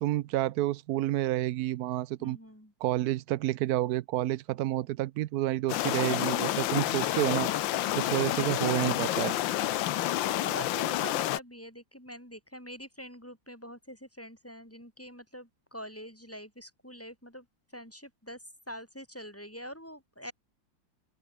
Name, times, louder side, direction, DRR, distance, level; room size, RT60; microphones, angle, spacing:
voice 1, 0.0-2.4 2.8-7.5 7.9-9.4, right 15 dB, 75° right, 0.8 m, -29 dB
voice 2, 2.2-2.7 9.8-17.5 17.7-20.3, equal, 5° left, 5.3 m, -45 dB
sound 1, 5.7-11.4, left 14 dB, 75° left, 1.4 m, -29 dB
open air
omnidirectional pair, 2.2 m